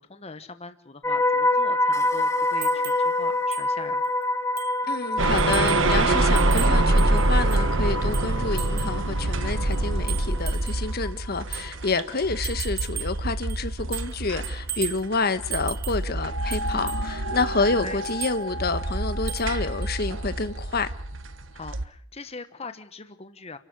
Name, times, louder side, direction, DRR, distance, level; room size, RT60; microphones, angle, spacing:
voice 1, 0.0-4.0 11.9-12.1 17.8-18.0 21.5-23.6, left 3 dB, 30° left, 1.2 m, -41 dB
sound 1, 1.0-11.1 11.4-11.7, left 2 dB, 15° left, 2.0 m, -27 dB
small bell, 2.6-3.1 3.5-3.7 4.0-4.1 4.6-4.8 5.4-5.9 6.4-7.7 8.1-9.0 9.7-10.9 11.5-11.7 12.4-13.2 13.5-14.2 14.4-15.1 15.5-16.1 16.5-17.1 18.0-18.4 19.3-19.5 19.8-19.9, right 14 dB, 50° right, 1.3 m, -36 dB
voice 2, 4.9-20.9, left 3 dB, 50° left, 1.3 m, -28 dB
sound 2, 5.2-21.9, right 2 dB, 70° right, 1.4 m, -26 dB
29.5 x 13.0 x 9.7 m
head